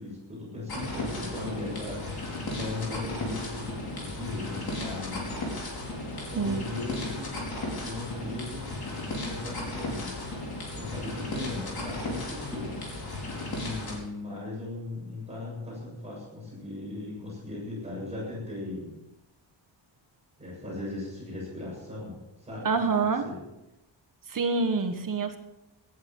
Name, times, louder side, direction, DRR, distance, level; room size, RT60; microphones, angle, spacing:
voice 1, 0.0-5.5 5.8-8.8 9.0-10.2 10.6-13.1 13.6-19.0 20.4-22.7 22.9-23.4, left 2 dB, 15° right, -5 dB, 7.7 m, -38 dB
sound 1, 0.7-14.0, left 2 dB, 55° left, 4.9 m, -35 dB
voice 2, 22.6-23.2 24.3-25.4, right 4 dB, 45° right, 6 dB, 1.5 m, -26 dB
18.0 x 11.0 x 5.6 m, 0.92 s
wide cardioid pair, 170°, 46 cm